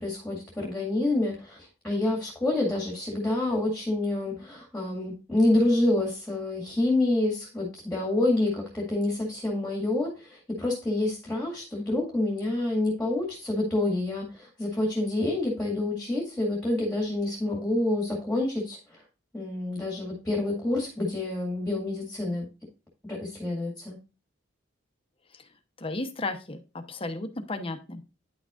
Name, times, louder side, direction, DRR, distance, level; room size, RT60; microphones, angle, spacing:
voice 1, 0.0-19.0 19.3-22.5 23.0-24.0, left 2 dB, 5° left, -1 dB, 2.0 m, -28 dB
voice 2, 25.8-26.6 26.9-28.1, left 2 dB, 30° left, 6 dB, 0.9 m, -34 dB
10.0 x 5.9 x 2.5 m, 0.31 s
head